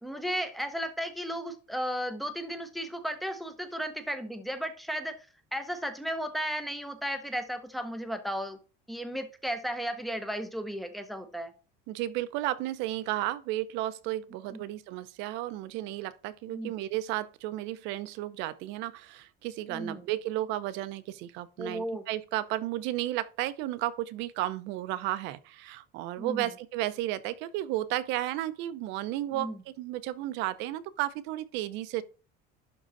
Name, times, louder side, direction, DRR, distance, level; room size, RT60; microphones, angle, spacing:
voice 1, 0.0-8.6 8.9-11.5 14.5-14.6 16.5-16.7 19.7-20.1 21.6-22.0 26.2-26.5 29.3-29.6, equal, ahead, 0.8 m, -35 dB
voice 2, 11.9-29.5 29.8-32.0, right 15 dB, 60° right, 0.8 m, -33 dB
11.5 x 3.9 x 4.0 m
cardioid pair, 175°, 21 cm